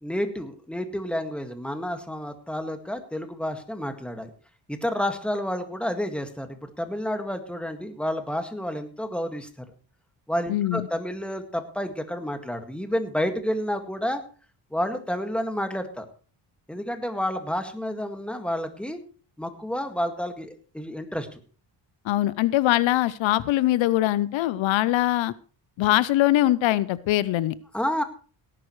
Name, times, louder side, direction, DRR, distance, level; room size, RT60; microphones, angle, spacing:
voice 1, 0.0-4.3 4.7-9.7 10.3-14.2 14.7-16.1 16.7-19.0 19.4-21.4 27.7-28.0, equal, ahead, 6 dB, 1.9 m, -30 dB
voice 2, 10.5-10.9 22.0-25.3 25.8-27.5, left 15 dB, 80° left, 18 dB, 0.7 m, -22 dB
18.0 x 11.0 x 3.2 m, 0.39 s
cardioid pair, 90°, 45 cm